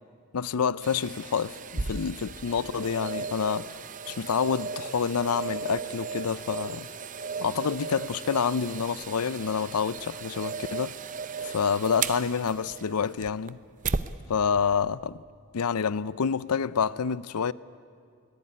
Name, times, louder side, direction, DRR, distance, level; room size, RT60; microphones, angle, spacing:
voice 1, 0.3-3.8 4.1-6.9 7.4-11.0 11.4-13.6 14.3-15.2 15.5-17.5, left 6 dB, 85° left, 0.6 m, -28 dB
sound 1, 0.8-14.1 14.6-14.7, right 5 dB, 35° right, 0.7 m, -36 dB
23.0 x 18.5 x 9.8 m
head